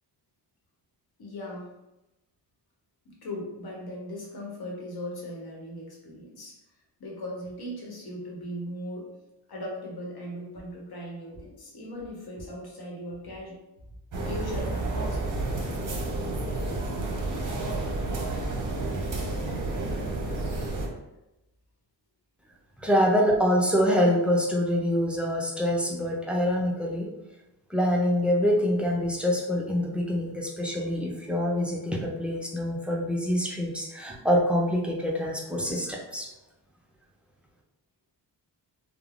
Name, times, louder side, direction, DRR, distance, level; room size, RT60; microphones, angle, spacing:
voice 1, 1.2-1.7 3.0-6.6 7.0-9.1 9.5-13.6 14.2-15.2, left 1 dB, 60° left, -2 dB, 1.0 m, -38 dB
sound 1, 14.1-20.9, right 2 dB, 45° right, 0.7 m, -30 dB
voice 2, 22.8-27.1 27.7-36.3, equal, 5° right, -1 dB, 0.4 m, -25 dB
3.2 x 2.0 x 2.4 m, 0.94 s
cardioid pair, 90°, 43 cm